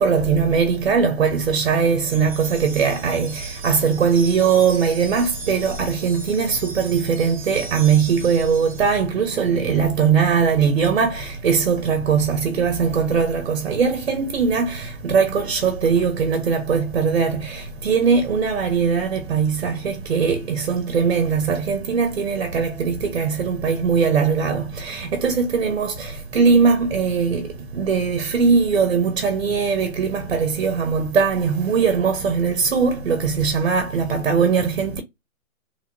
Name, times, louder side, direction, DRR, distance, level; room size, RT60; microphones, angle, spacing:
voice 1, 0.0-27.5 27.8-35.0, right 6 dB, 50° right, 0.8 m, -20 dB
sound 1, 2.1-8.9, right 3 dB, 25° right, 0.5 m, -38 dB
3.2 x 2.8 x 2.6 m
hypercardioid pair, 160°, 42 cm